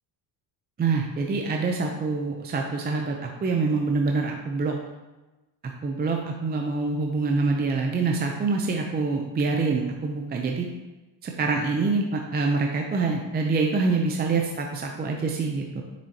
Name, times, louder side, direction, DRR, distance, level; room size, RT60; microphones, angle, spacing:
voice 1, 0.8-4.8 5.8-10.7 11.2-15.8, right 4 dB, 20° right, 1 dB, 0.5 m, -25 dB
6.9 x 6.2 x 2.8 m, 1.1 s
cardioid pair, 130°, 47 cm